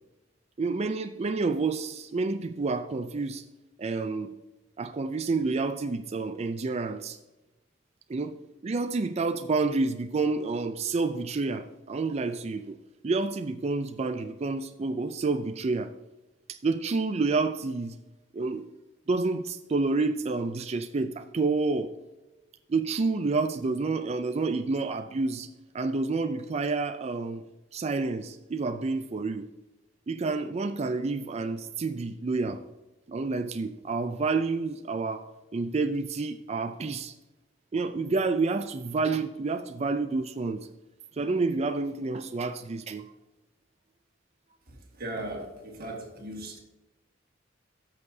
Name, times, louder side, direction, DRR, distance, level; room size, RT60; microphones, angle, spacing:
voice 1, 0.6-3.4 3.8-4.3 4.8-7.2 8.1-8.3 8.6-12.8 13.0-15.9 16.5-18.0 18.3-18.6 19.1-21.9 22.7-25.5 25.7-27.4 27.7-29.5 30.1-32.6 33.1-35.3 35.5-37.1 37.7-40.7 41.2-43.0, right 3 dB, 35° right, 8 dB, 0.4 m, -29 dB
voice 2, 44.7-46.6, right 1 dB, 50° right, 1 dB, 1.9 m, -38 dB
14.0 x 6.6 x 2.7 m, 1.0 s
head